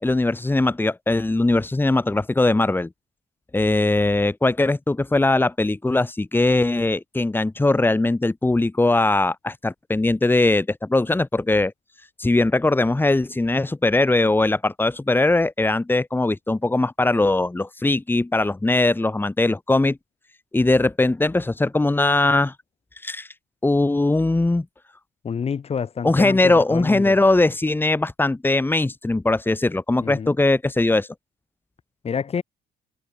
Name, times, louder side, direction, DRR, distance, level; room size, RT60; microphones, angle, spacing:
voice 1, 0.0-2.9 3.5-11.7 12.2-20.0 20.5-22.5 23.0-23.3 23.6-24.7 26.0-31.1, left 2 dB, 10° left, 5.3 m, -20 dB
voice 2, 25.2-27.2 30.0-30.3 32.0-32.4, left 6 dB, 35° left, 6.3 m, -28 dB
cardioid pair, 110°, 17 cm